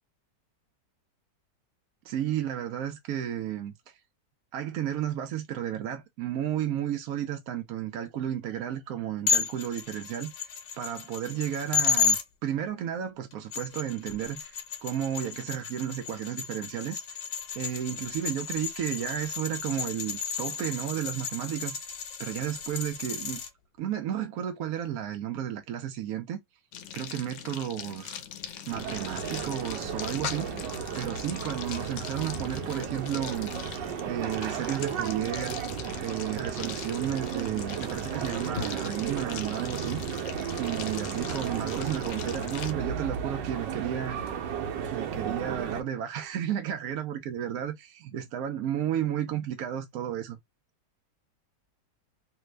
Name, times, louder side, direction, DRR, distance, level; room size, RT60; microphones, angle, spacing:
voice 1, 2.0-4.0 4.5-10.3 10.8-17.2 17.5-23.4 23.8-26.4 26.9-28.2 28.6-35.6 36.0-40.2 40.6-44.2 44.9-50.4, right 10 dB, 70° right, 0.9 m, -33 dB
sound 1, 9.3-12.2 13.3-23.5, left 6 dB, 70° left, 1.3 m, -32 dB
sound 2, 26.7-42.7, left 9 dB, 90° left, 1.3 m, -41 dB
sound 3, 28.7-45.8, right 7 dB, 85° right, 1.4 m, -34 dB
3.3 x 2.1 x 3.1 m
omnidirectional pair, 1.9 m